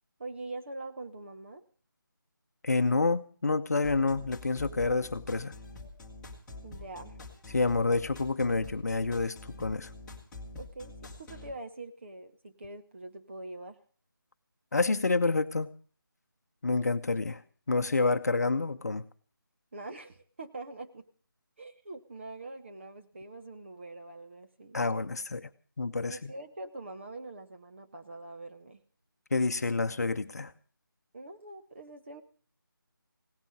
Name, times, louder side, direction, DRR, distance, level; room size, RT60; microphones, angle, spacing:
voice 1, 0.2-1.6 6.6-7.2 10.5-13.8 19.7-21.1 21.6-24.8 26.1-28.8 31.1-32.2, right 2 dB, 35° right, 6 dB, 1.0 m, -44 dB
voice 2, 2.6-5.5 7.5-9.9 14.7-15.7 16.6-17.4 17.7-19.0 24.7-25.5 25.8-26.3 29.3-30.5, left 3 dB, 45° left, 10 dB, 0.8 m, -28 dB
sound 1, 3.8-11.5, left 2 dB, 5° left, 1.5 m, -46 dB
17.5 x 9.1 x 7.6 m, 0.43 s
figure-of-eight pair, 160°, 12 cm